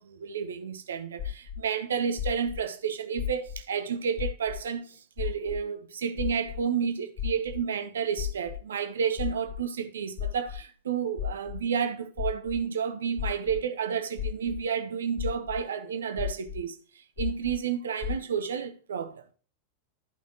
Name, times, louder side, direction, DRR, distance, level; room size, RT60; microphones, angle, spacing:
voice 1, 0.0-16.8 17.2-19.3, right 7 dB, 65° right, 1.1 m, -31 dB
sound 1, 1.2-1.5 2.2-2.5 3.2-3.5 4.2-4.5 5.2-5.5 6.2-6.5 7.2-7.5 8.2-8.5 9.2-9.5 10.2-10.5 11.2-11.5 12.2-12.5 13.2-13.5 14.2-14.5 15.2-15.5 16.2-16.5 17.2-17.5 18.0-18.1, left 11 dB, 40° left, 2.3 m, -32 dB
12.0 x 5.6 x 3.0 m
figure-of-eight pair, 90°, 0 cm